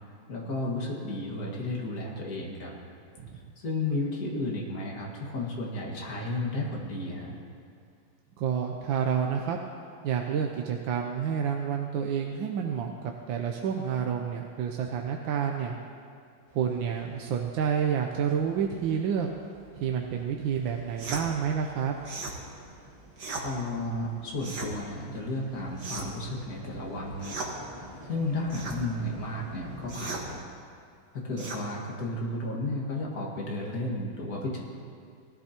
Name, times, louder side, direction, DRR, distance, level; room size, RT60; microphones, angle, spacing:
voice 1, 0.3-2.7 3.6-7.4 23.4-27.4 28.0-30.4 31.1-34.6, left 2 dB, 45° left, -3 dB, 2.3 m, -33 dB
voice 2, 8.4-9.6 10.0-15.8 16.5-19.3 19.8-21.9, right 7 dB, 70° right, 2 dB, 1.4 m, -29 dB
sound 1, 16.5-30.3, right 1 dB, 25° right, 1.3 m, -49 dB
sound 2, 21.0-21.3 22.0-22.4 23.2-23.5 24.4-24.7 25.8-26.2 27.2-27.5 28.5-28.8 29.9-30.3 31.4-31.6, right 3 dB, 55° right, 2.0 m, -36 dB
19.0 x 13.0 x 2.9 m, 2.3 s
omnidirectional pair, 2.3 m